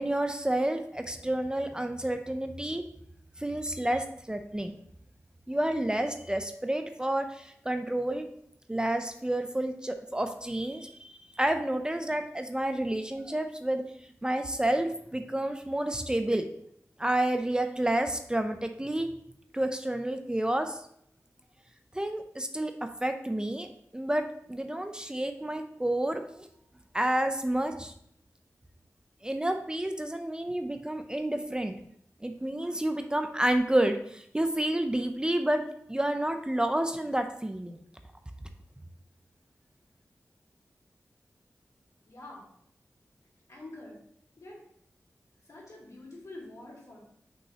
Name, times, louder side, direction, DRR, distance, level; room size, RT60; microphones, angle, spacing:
voice 1, 0.0-2.8 3.4-4.7 5.5-8.3 8.7-13.8 14.2-16.5 17.0-19.1 19.5-20.8 21.9-23.7 23.9-26.5 26.9-27.9 29.2-31.8 32.2-35.6 35.9-37.8, right 1 dB, 15° right, 6 dB, 0.5 m, -30 dB
voice 2, 42.1-42.4 43.5-43.9 44.4-44.6 45.5-47.0, left 2 dB, 70° left, -4 dB, 2.6 m, -46 dB
6.2 x 5.4 x 2.9 m, 0.71 s
wide cardioid pair, 60°, 6 cm